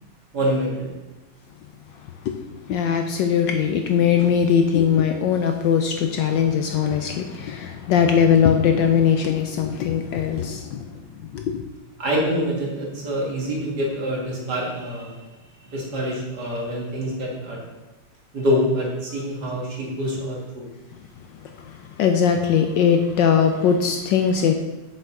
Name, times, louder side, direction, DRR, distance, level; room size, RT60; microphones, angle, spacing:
voice 1, 0.3-0.9 12.0-15.1 15.7-17.6 18.3-20.7, equal, 50° right, -3 dB, 2.2 m, -25 dB
voice 2, 2.7-11.0 11.3-11.6 21.4-24.5, left 7 dB, 75° left, 5 dB, 1.1 m, -20 dB
7.8 x 6.8 x 3.7 m, 1.1 s
omnidirectional pair, 2.3 m